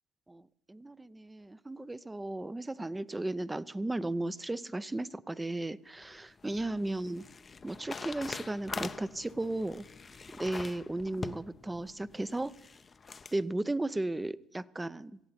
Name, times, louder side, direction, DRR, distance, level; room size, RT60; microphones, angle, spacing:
voice 1, 0.3-7.2 7.6-9.8 10.4-12.5 13.3-15.2, right 2 dB, 15° right, 17 dB, 0.5 m, -35 dB
sound 1, 6.0-13.4, left 4 dB, 30° left, 0.6 m, -44 dB
18.5 x 14.5 x 4.2 m, 0.82 s
supercardioid pair, 80°, 0 cm